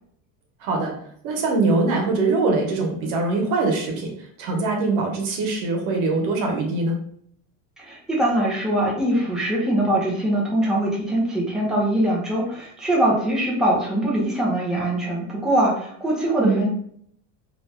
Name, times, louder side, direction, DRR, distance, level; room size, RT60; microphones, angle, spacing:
voice 1, 0.6-0.9 1.2-4.1 4.4-7.0 16.4-16.7, right 3 dB, 90° right, 1 dB, 1.0 m, -22 dB
voice 2, 7.8-16.7, right 1 dB, ahead, -4 dB, 0.6 m, -22 dB
2.6 x 2.2 x 3.3 m, 0.65 s
cardioid pair, 150°, 38 cm